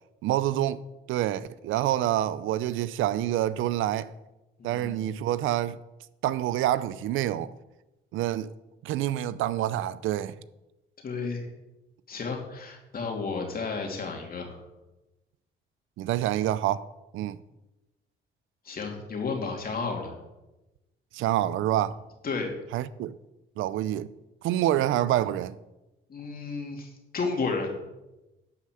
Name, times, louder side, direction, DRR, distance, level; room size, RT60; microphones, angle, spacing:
voice 1, 0.2-0.8 1.1-4.1 4.6-5.8 6.2-7.5 8.1-8.5 8.8-10.3 16.0-16.9 17.1-17.4 21.1-22.0 22.7-23.1 23.6-24.1 24.4-25.6, right 13 dB, 85° right, 0.5 m, -27 dB
voice 2, 4.6-5.0 11.0-11.5 12.1-14.6 18.6-20.1 22.2-22.5 26.1-27.7, left 4 dB, 50° left, 2.7 m, -32 dB
11.5 x 4.9 x 7.7 m
cardioid pair, 90°, 20 cm